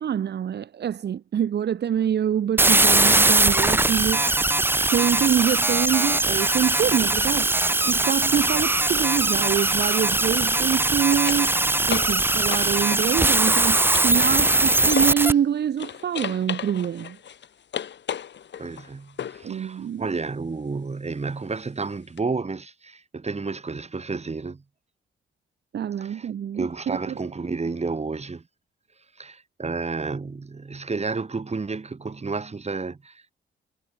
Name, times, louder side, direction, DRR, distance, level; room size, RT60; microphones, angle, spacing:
voice 1, 0.0-4.5 4.9-7.5 7.8-11.6 11.9-17.2 19.4-20.0 25.7-27.2, right 9 dB, 60° right, 1.0 m, -25 dB
sound 1, 2.6-15.3, right 2 dB, 10° right, 0.6 m, -21 dB
sound 2, 8.1-8.2 10.5-15.4 15.8-19.5 22.2-22.3, left 8 dB, 65° left, 3.1 m, -36 dB
voice 2, 18.6-24.6 26.0-26.3 26.5-28.4 29.2-33.3, right 4 dB, 35° right, 4.7 m, -31 dB
cardioid pair, 70°, 20 cm